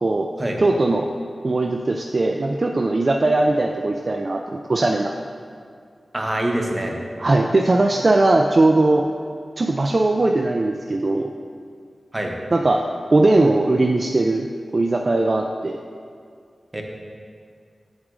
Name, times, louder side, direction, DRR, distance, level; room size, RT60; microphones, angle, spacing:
voice 1, 0.0-0.3 0.6-1.1 1.4-5.1 7.2-9.1 9.6-11.3 12.5-14.5 14.7-15.8, right 2 dB, 50° right, 2 dB, 0.3 m, -19 dB
voice 2, 6.1-7.0 12.1-12.3 16.7-16.8, right 1 dB, 25° right, 1 dB, 0.9 m, -24 dB
7.2 x 4.8 x 3.7 m, 2.2 s
cardioid pair, 50°, 0 cm